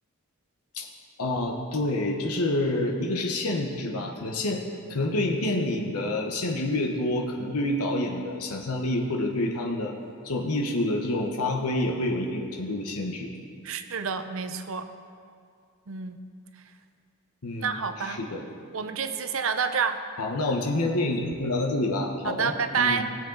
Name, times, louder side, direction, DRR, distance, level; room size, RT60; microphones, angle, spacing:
voice 1, 1.2-4.6 4.9-9.9 10.2-13.3 17.4-18.4 20.2-23.1, left 1 dB, 90° left, 0 dB, 1.1 m, -28 dB
voice 2, 13.6-14.9 15.9-16.2 17.6-18.2 18.7-20.0 22.2-23.0, right 6 dB, 65° right, 9 dB, 0.7 m, -28 dB
18.5 x 7.5 x 3.9 m, 2.3 s
head